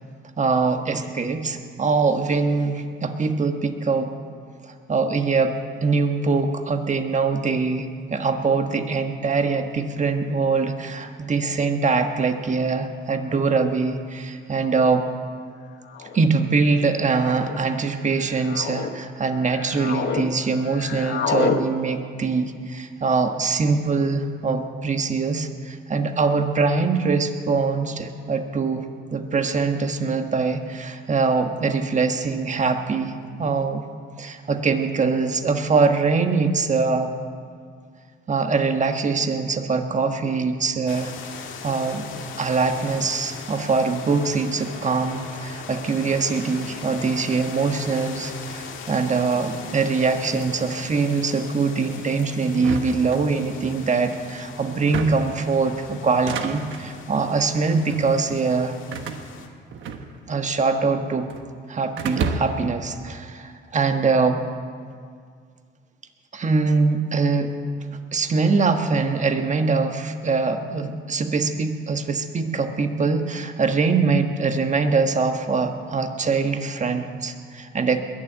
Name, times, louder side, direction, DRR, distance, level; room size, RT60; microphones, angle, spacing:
voice 1, 0.4-4.1 4.6-15.1 16.1-33.8 34.2-37.1 38.3-41.1 41.6-42.1 42.4-58.7 60.3-61.3 61.7-64.4 66.3-67.5 68.1-78.0, right 4 dB, 35° right, 6 dB, 1.4 m, -23 dB
sound 1, 13.6-13.7 14.6-14.9 15.9-16.2 17.1-17.6 18.2-18.9 19.4-20.3 20.5-21.6, left 7 dB, 60° left, 1.2 m, -28 dB
sound 2, 40.9-59.5, left 6 dB, 80° left, 1.7 m, -39 dB
sound 3, 52.6-53.7 54.7-55.4 56.1-56.9 57.7-58.1 58.9-60.4 60.7-61.5 62.0-62.7, right 5 dB, 75° right, 1.3 m, -31 dB
21.5 x 7.2 x 9.0 m, 2.1 s
cardioid pair, 90°, 20 cm